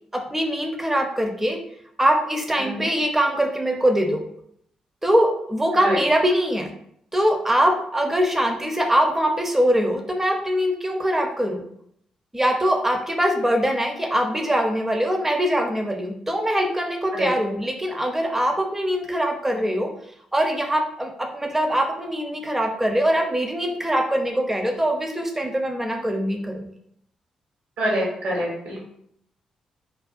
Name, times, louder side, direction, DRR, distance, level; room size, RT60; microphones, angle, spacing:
voice 1, 0.1-1.6 2.0-4.3 5.0-6.7 7.1-11.6 12.3-19.9 20.3-26.7, equal, 15° right, 4 dB, 0.5 m, -22 dB
voice 2, 27.8-28.8, equal, 70° right, -3 dB, 1.0 m, -26 dB
2.5 x 2.2 x 2.4 m, 0.70 s
hypercardioid pair, 45°, 2 cm